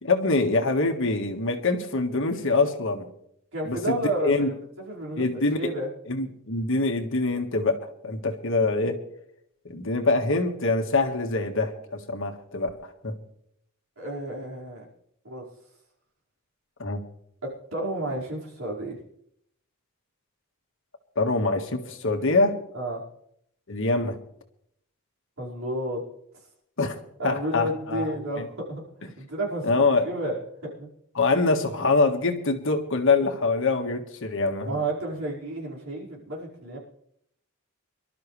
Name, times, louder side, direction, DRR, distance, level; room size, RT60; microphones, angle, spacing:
voice 1, 0.0-3.0 3.7-4.5 5.2-5.7 6.1-9.0 9.7-13.2 16.8-17.0 21.2-22.6 23.7-24.2 26.8-28.1 28.4-28.5 29.6-30.1 31.1-34.7, left 3 dB, 65° left, 4 dB, 1.7 m, -24 dB
voice 2, 3.5-4.5 4.8-5.2 5.6-5.9 14.0-14.9 15.2-15.5 17.7-19.0 22.7-23.0 25.4-26.0 27.2-30.9 34.6-36.8, right 1 dB, 70° right, -4 dB, 5.2 m, -31 dB
25.0 x 12.5 x 3.3 m, 0.72 s
head